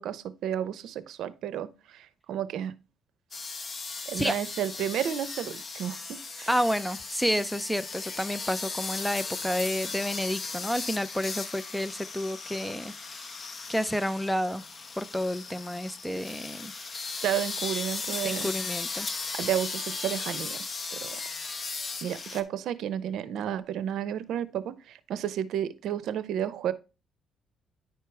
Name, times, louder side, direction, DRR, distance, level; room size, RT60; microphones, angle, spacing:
voice 1, 0.0-2.7 4.1-6.0 6.4-6.5 17.2-18.5 19.4-21.2 21.6-26.7, right 10 dB, 75° right, 0.7 m, -32 dB
sound 1, 3.3-22.4, left 4 dB, 35° left, 1.1 m, -37 dB
voice 2, 6.5-13.3 13.7-14.6 15.0-16.7 18.2-19.4, equal, ahead, 0.6 m, -30 dB
10.0 x 4.5 x 3.4 m
cardioid pair, 90°, 0 cm